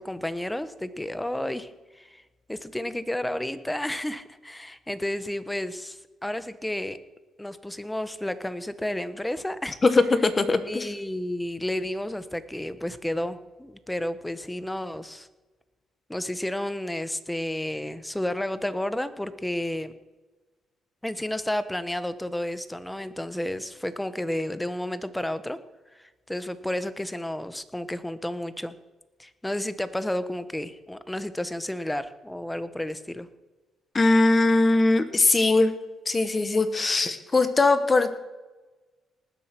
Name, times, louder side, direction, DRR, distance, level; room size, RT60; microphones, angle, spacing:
voice 1, 0.0-2.2 2.5-7.0 7.4-9.8 10.7-15.3 16.1-19.9 21.0-25.6 25.9-28.8 29.2-33.3, left 1 dB, 5° left, 13 dB, 1.0 m, -31 dB
voice 2, 9.8-10.9 33.9-35.7 36.1-38.1, left 3 dB, 25° left, 11 dB, 1.3 m, -21 dB
19.5 x 7.7 x 6.0 m, 1.2 s
cardioid pair, 90°, 0 cm